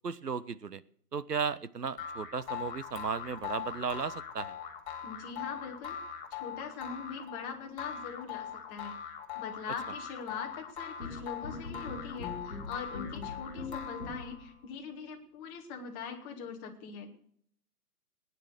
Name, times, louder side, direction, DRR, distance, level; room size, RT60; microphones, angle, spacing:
voice 1, 0.0-0.8 1.1-4.6, right 5 dB, 90° right, 16 dB, 1.0 m, -35 dB
sound 1, 2.0-14.5, left 8 dB, 30° left, 2.6 m, -41 dB
voice 2, 5.0-6.0 6.3-8.9 9.3-17.1, left 6 dB, 15° left, 3 dB, 1.3 m, -42 dB
sound 2, 11.0-14.5, left 4 dB, ahead, 0.5 m, -42 dB
18.0 x 9.7 x 6.4 m, 0.63 s
figure-of-eight pair, 145°, 46 cm